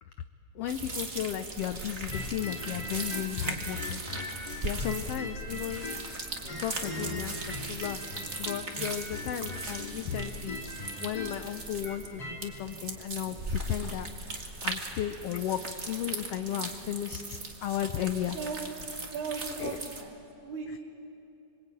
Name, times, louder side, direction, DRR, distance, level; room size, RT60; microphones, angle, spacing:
voice 1, 0.5-4.0 4.6-5.9 6.6-7.4 7.7-8.0 8.4-10.6 11.0-14.1 14.6-15.6 15.9-18.4 19.6-19.8, left 11 dB, 70° left, 9 dB, 1.5 m, -34 dB
sound 1, 0.7-20.0, right 2 dB, 25° right, 1.9 m, -39 dB
sound 2, 2.1-6.1 6.4-12.4, left 2 dB, 35° left, 3.4 m, -40 dB
voice 2, 18.2-18.7 19.1-20.1 20.4-20.8, right 5 dB, 75° right, -1 dB, 3.1 m, -37 dB
26.0 x 23.0 x 9.0 m, 2.9 s
omnidirectional pair, 3.3 m